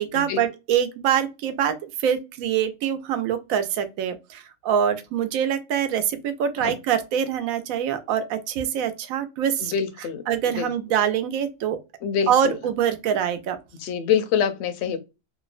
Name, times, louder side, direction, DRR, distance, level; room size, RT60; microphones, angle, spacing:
voice 1, 0.0-9.7 10.3-11.8 12.3-13.6, right 9 dB, 90° right, 1.0 m, -24 dB
voice 2, 9.6-10.7 12.0-12.5 13.8-15.0, left 8 dB, 65° left, 0.8 m, -25 dB
2.9 x 2.1 x 2.3 m
omnidirectional pair, 1.4 m